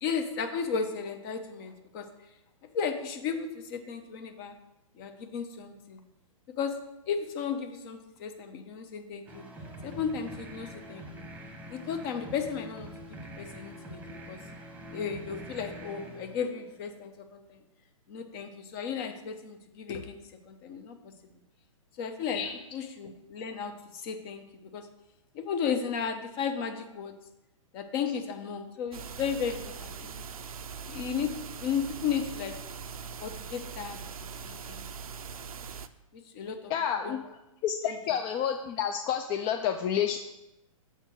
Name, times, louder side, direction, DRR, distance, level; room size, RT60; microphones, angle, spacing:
voice 1, 0.0-2.0 2.7-4.5 5.0-6.0 6.6-6.7 7.1-9.4 9.8-11.2 11.7-14.4 14.9-17.6 18.1-21.0 22.0-22.4 22.7-24.4 24.7-24.9 25.3-27.1 27.7-30.3 30.8-32.5 33.2-34.0 34.4-34.9 36.1-36.7 37.0-37.2 37.8-38.0, left 6 dB, 45° left, 7 dB, 1.0 m, -34 dB
sound 1, 9.3-17.0, equal, 10° right, 1.0 m, -45 dB
sound 2, 28.9-35.9, right 6 dB, 90° right, 0.5 m, -41 dB
voice 2, 36.7-37.2 37.6-40.2, left 9 dB, 25° left, 6 dB, 0.4 m, -29 dB
6.8 x 4.3 x 6.2 m, 0.93 s
hypercardioid pair, 125°, 18 cm